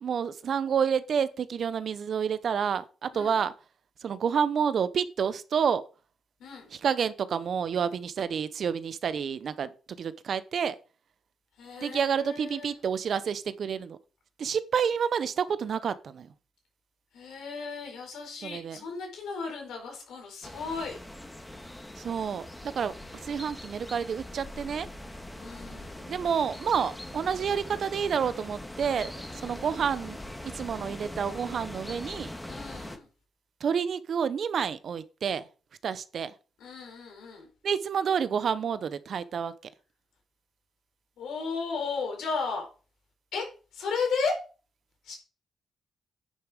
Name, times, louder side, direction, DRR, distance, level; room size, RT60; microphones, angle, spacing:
voice 1, 0.0-3.5 4.0-5.8 6.7-10.8 11.8-14.0 14.4-16.3 18.4-18.8 22.0-22.9 23.2-24.9 26.1-30.2 30.4-32.3 33.6-35.4 35.8-36.3 37.6-39.5, right 7 dB, 65° right, 0.9 m, -29 dB
voice 2, 6.4-6.7 11.6-12.7 17.1-21.0 25.4-26.1 32.5-33.1 36.6-37.5 41.2-42.7 43.3-43.5 43.7-44.3 45.0-45.1, left 4 dB, 80° left, 4.5 m, -34 dB
sound 1, 20.4-33.0, left 1 dB, 15° left, 2.0 m, -42 dB
9.5 x 6.8 x 5.0 m
supercardioid pair, 50°, 0 cm